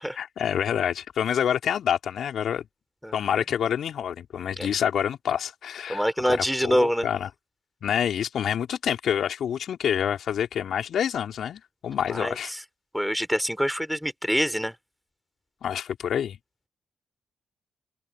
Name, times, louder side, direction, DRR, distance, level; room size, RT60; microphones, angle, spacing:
voice 1, 0.0-2.7 3.1-7.3 7.8-12.5 15.6-16.4, left 9 dB, 65° left, 3.7 m, -27 dB
voice 2, 5.9-7.1 12.1-12.6 12.9-14.7, equal, ahead, 4.0 m, -25 dB
open air
hypercardioid pair, 40°, 0 cm